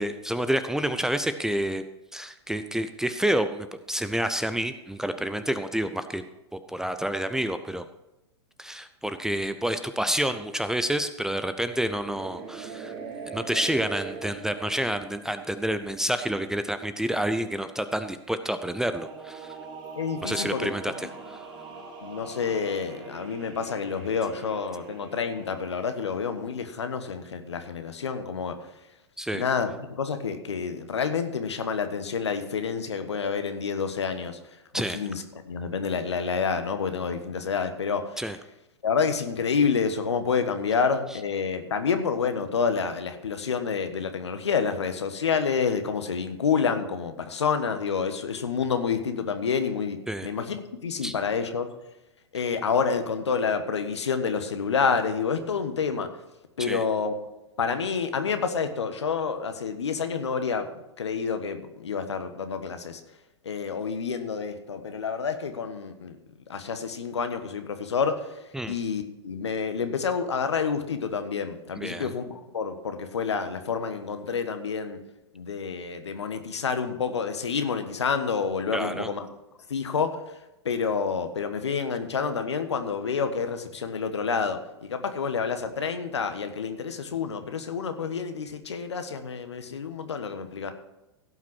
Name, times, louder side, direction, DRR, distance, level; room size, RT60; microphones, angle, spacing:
voice 1, 0.0-1.8 2.1-6.2 6.7-7.8 8.6-12.9 13.3-19.5 20.2-21.4 29.2-29.4 34.7-35.0 38.2-38.4 50.1-50.3 51.0-51.1 56.6-56.8 68.5-68.8 71.8-72.1 78.7-79.1, right 1 dB, 5° right, 10 dB, 0.5 m, -29 dB
sound 1, 12.0-16.6 18.7-26.5, right 5 dB, 30° right, 2.6 m, -42 dB
voice 2, 20.0-20.7 22.0-28.6 29.3-34.4 34.7-38.2 38.8-51.7 52.3-56.1 56.6-57.2 57.6-60.7 61.0-63.0 63.4-66.2 66.5-68.3 68.7-75.0 75.3-79.3 79.7-80.1 80.6-90.7, left 5 dB, 75° left, 8 dB, 1.4 m, -28 dB
16.0 x 5.9 x 6.2 m, 0.94 s
figure-of-eight pair, 100°, 15 cm